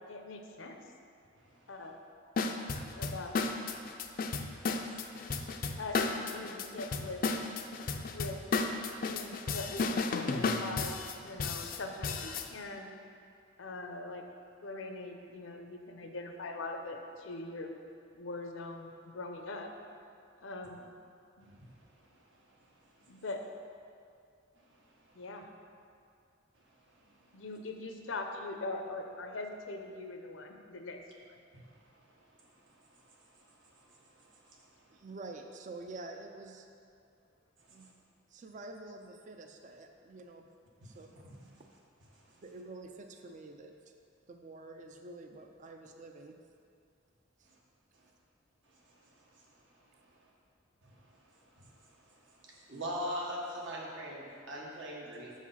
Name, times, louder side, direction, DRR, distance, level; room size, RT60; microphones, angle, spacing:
voice 1, 0.1-0.8 1.7-2.0 2.9-3.4 5.8-7.2 8.1-8.4 9.0-13.0 13.6-14.2 14.6-17.7 18.1-19.7 20.4-20.9 21.4-21.5 23.1-23.4 25.1-25.5 27.3-31.0 31.3-31.4, left 2 dB, 85° left, 4 dB, 0.7 m, -42 dB
sound 1, 2.4-12.5, left 4 dB, 45° left, 0.4 m, -33 dB
voice 2, 34.9-36.7 37.7-37.9 38.3-40.5 40.8-41.1 42.3-43.7 44.3-46.4 47.4-47.5, right 2 dB, 40° right, 4 dB, 0.4 m, -48 dB
voice 3, 52.4-55.3, equal, 75° right, -3 dB, 1.4 m, -41 dB
7.0 x 4.8 x 5.6 m, 2.5 s
head